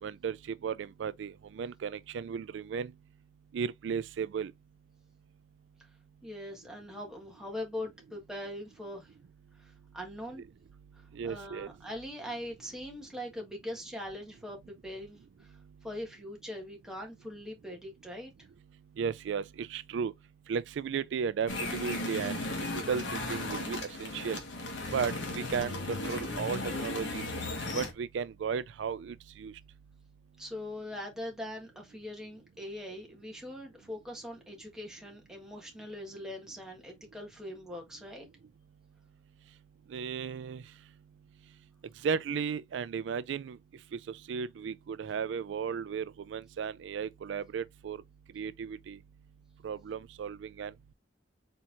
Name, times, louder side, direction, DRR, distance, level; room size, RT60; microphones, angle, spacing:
voice 1, 0.0-2.9 3.5-4.5 11.1-11.7 19.0-20.1 20.5-22.4 22.7-24.4 24.9-27.2 27.7-29.5 39.9-40.6 42.0-43.6 43.9-48.0 48.3-49.0 49.6-50.7, right 6 dB, 65° right, 0.3 m, -35 dB
voice 2, 6.2-9.1 9.5-10.4 10.9-18.5 30.4-38.3, left 1 dB, 5° right, 1.5 m, -42 dB
sound 1, 21.5-27.9, left 2 dB, 70° left, 1.6 m, -36 dB
4.4 x 4.4 x 2.5 m
head